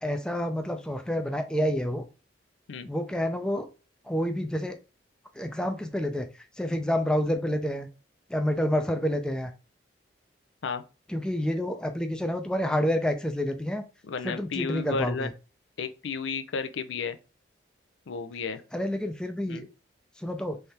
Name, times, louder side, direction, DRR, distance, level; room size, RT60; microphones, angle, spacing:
voice 1, 0.0-2.1 2.9-3.7 4.1-4.8 5.4-6.3 6.6-7.9 8.3-9.5 11.1-13.8 14.2-15.3 18.7-19.7 20.2-20.6, equal, 5° left, 0.4 m, -28 dB
voice 2, 14.0-15.3 15.8-17.2 18.1-18.6 19.5-19.7, left 5 dB, 80° left, 0.5 m, -33 dB
3.4 x 3.3 x 4.2 m
head